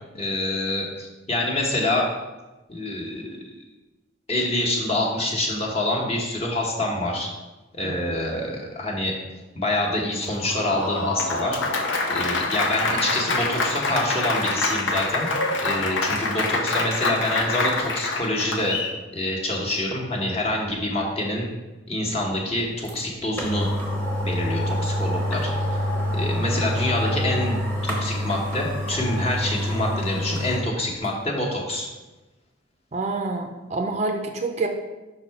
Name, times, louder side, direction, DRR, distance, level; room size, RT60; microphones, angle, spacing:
voice 1, 0.1-2.1 2.7-3.5 4.3-7.3 7.7-9.1 9.5-11.6 12.1-15.3 15.6-18.8 19.1-21.5 21.9-23.7 24.2-25.8 26.1-31.9, left 1 dB, 30° left, -2 dB, 1.1 m, -26 dB
Applause, 10.2-19.0, left 3 dB, 75° left, 0.8 m, -26 dB
sound 1, 22.9-23.0 23.4-30.6 31.0-31.1, left 1 dB, 10° left, 1.0 m, -26 dB
voice 2, 32.9-34.7, right 3 dB, 35° right, 3 dB, 0.5 m, -27 dB
5.5 x 4.1 x 5.6 m, 1.1 s
head